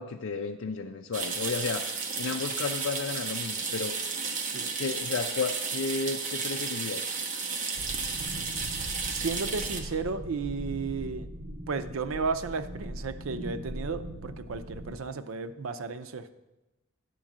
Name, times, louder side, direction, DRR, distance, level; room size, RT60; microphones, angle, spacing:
voice 1, 0.0-1.9 2.2-4.0 4.7-7.1, left 4 dB, 80° left, 3 dB, 0.4 m, -33 dB
sound 1, 1.1-9.8, right 4 dB, 40° right, 1.0 m, -33 dB
sound 2, 7.8-14.9, right 1 dB, 70° right, 1.0 m, -40 dB
voice 2, 9.1-11.3 11.7-16.3, right 4 dB, 90° right, 10 dB, 0.6 m, -33 dB
11.0 x 3.8 x 7.2 m, 1.0 s
head